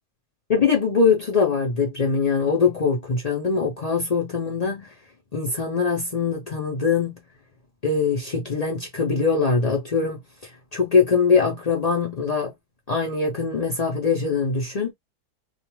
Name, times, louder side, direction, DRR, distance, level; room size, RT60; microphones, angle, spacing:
voice 1, 0.5-4.9 5.3-7.2 7.8-10.2 10.7-12.5 12.9-14.9, left 5 dB, 85° left, 0.3 m, -22 dB
2.5 x 2.3 x 3.0 m
omnidirectional pair, 1.7 m